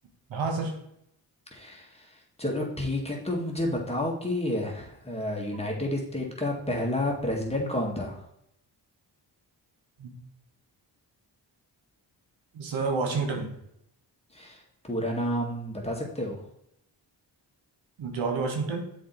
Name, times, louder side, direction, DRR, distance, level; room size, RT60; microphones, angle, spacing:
voice 1, 0.3-0.8 5.5-5.7 10.0-10.1 12.5-13.5 18.0-18.8, right 4 dB, 85° right, 2 dB, 1.3 m, -29 dB
voice 2, 1.5-2.1 2.4-8.2 14.3-14.6 14.9-16.4, left 1 dB, 15° left, -1 dB, 1.9 m, -30 dB
7.3 x 4.5 x 4.0 m, 0.75 s
cardioid pair, 55°, 45 cm